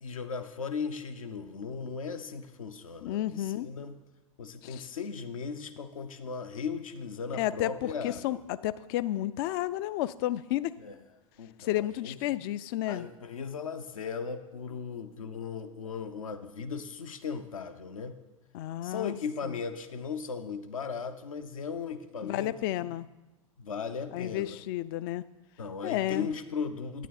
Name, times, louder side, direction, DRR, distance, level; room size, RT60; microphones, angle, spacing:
voice 1, 0.0-3.9 4.4-8.4 10.8-10.9 11.4-12.2 12.9-18.2 18.8-22.9 23.6-24.6 25.6-27.1, left 5 dB, 70° left, 8 dB, 0.8 m, -37 dB
voice 2, 3.0-3.7 4.6-4.9 7.4-10.7 11.6-13.1 18.5-19.2 22.2-23.1 24.1-25.3 25.8-26.3, left 14 dB, 40° left, 17 dB, 0.4 m, -31 dB
9.2 x 9.1 x 4.1 m, 1.0 s
figure-of-eight pair, 90°, 18 cm